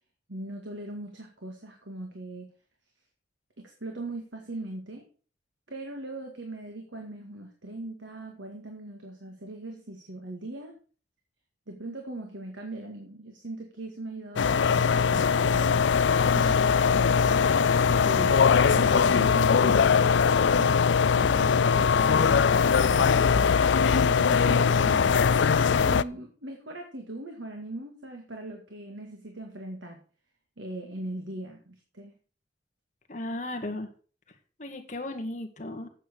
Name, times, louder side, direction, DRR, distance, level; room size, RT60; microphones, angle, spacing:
voice 1, 0.3-2.5 3.6-5.0 5.7-10.7 11.7-15.9 16.2-17.5 17.9-23.6 24.1-25.2 25.8-30.0 30.6-32.1, right 1 dB, 85° right, 3 dB, 2.1 m, -40 dB
sound 1, 14.4-26.0, left 6 dB, 75° left, 0.4 m, -21 dB
voice 2, 33.1-33.9 34.6-35.9, left 1 dB, 40° left, 4 dB, 1.9 m, -35 dB
9.2 x 7.8 x 6.3 m, 0.40 s
head